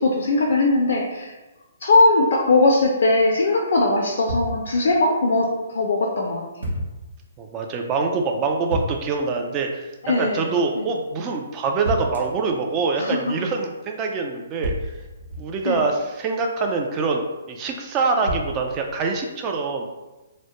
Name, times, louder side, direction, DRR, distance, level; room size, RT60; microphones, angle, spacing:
voice 1, 0.0-1.3 1.8-6.4 10.0-10.5 10.8-10.9 13.0-13.2 15.6-15.8, left 2 dB, 60° left, -1 dB, 0.4 m, -20 dB
sound 1, 4.3-5.0 6.6-7.2 8.7-9.3 11.8-12.5 14.6-16.0 18.3-19.1, equal, 70° right, 0.7 m, -31 dB
voice 2, 7.4-14.9 15.4-19.9, right 4 dB, 25° right, 2 dB, 0.3 m, -25 dB
2.1 x 2.1 x 2.9 m, 1.1 s
figure-of-eight pair, 130°, 0 cm